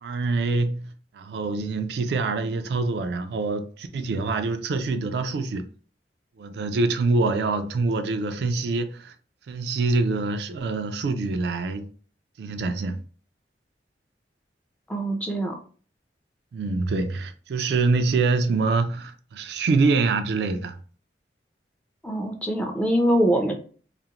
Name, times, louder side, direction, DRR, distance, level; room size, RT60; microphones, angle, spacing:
voice 1, 0.0-5.6 6.4-9.1 9.5-11.9 12.4-13.0 16.5-20.8, right 3 dB, 65° right, 0.3 m, -25 dB
voice 2, 14.9-15.6 22.0-23.5, equal, 5° left, 0.4 m, -23 dB
2.4 x 2.0 x 2.8 m
head